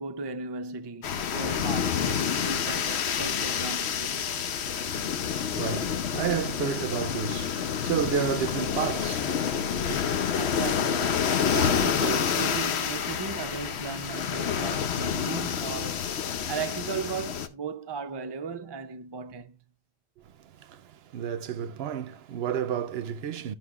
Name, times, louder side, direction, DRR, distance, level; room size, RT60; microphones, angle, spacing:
voice 1, 0.0-4.2 10.3-16.1 16.5-19.6, right 5 dB, 35° right, 0.4 m, -36 dB
sound 1, 1.0-17.5, left 7 dB, 75° left, 1.0 m, -28 dB
voice 2, 5.5-10.0 20.7-20.8 21.1-23.5, right 8 dB, 70° right, 0.8 m, -31 dB
13.0 x 5.9 x 2.4 m
omnidirectional pair, 1.1 m